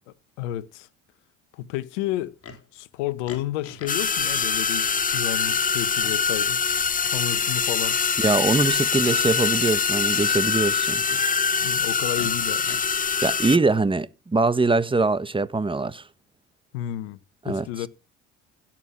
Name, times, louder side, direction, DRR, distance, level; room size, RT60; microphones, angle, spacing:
voice 1, 0.4-0.9 1.5-2.3 2.7-6.6 7.0-8.0 11.6-12.7 16.7-17.2 17.4-17.9, left 13 dB, 75° left, 1.2 m, -31 dB
Livestock farm animals working animals, 2.4-2.6 3.3-4.0 4.3-4.4 5.1-5.6 6.0-6.2 7.3-8.0 8.5-8.7 9.0-9.3 10.7-11.2 12.1-12.8, left 4 dB, 40° left, 4.2 m, -42 dB
sound 1, 3.9-13.6, left 6 dB, 25° left, 1.0 m, -24 dB
voice 2, 8.2-11.0 13.2-16.0 17.4-17.7, right 3 dB, 15° right, 1.4 m, -23 dB
16.5 x 7.5 x 8.7 m
hypercardioid pair, 65°, 36 cm